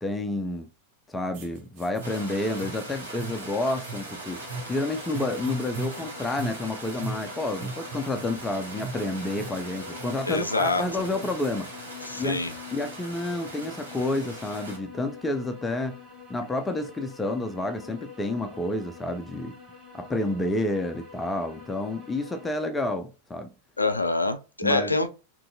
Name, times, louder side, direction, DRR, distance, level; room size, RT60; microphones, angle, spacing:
voice 1, 0.0-0.7 1.1-4.4 4.7-11.7 12.1-12.4 12.7-16.0 16.3-19.6 19.9-23.5 24.6-25.0, left 2 dB, 10° left, 0.4 m, -29 dB
sound 1, 1.3-11.6, right 4 dB, 50° right, 0.6 m, -39 dB
sound 2, 2.0-14.8, right 2 dB, 80° right, 0.9 m, -41 dB
sound 3, 4.2-22.5, left 6 dB, 20° right, 0.9 m, -46 dB
voice 2, 10.3-11.0 12.0-12.5 23.8-25.1, left 2 dB, 80° left, 0.3 m, -26 dB
3.0 x 2.6 x 2.5 m
figure-of-eight pair, 90°, 0 cm